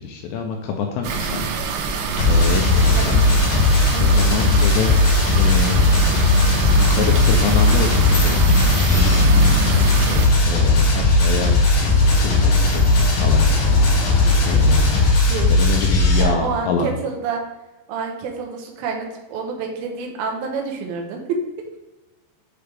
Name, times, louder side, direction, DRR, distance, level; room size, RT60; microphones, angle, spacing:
voice 1, 0.0-1.5 2.3-3.2 4.0-5.0 5.4-5.8 6.8-9.3 9.9-11.6 12.2-13.8 14.4-14.9 15.5-16.9, left 6 dB, 85° left, 2 dB, 2.6 m, -26 dB
sound 1, 1.0-10.3, right 5 dB, 90° right, 3.5 m, -26 dB
sound 2, 2.2-16.2, left 2 dB, 45° left, 3.1 m, -17 dB
sound 3, 2.6-15.1, left 1 dB, 65° left, 2.5 m, -28 dB
voice 2, 3.9-4.3 15.0-15.5 16.2-17.4 17.9-21.4, right 5 dB, 75° right, 1 dB, 2.3 m, -28 dB
7.6 x 4.9 x 3.4 m, 1.1 s
omnidirectional pair, 5.6 m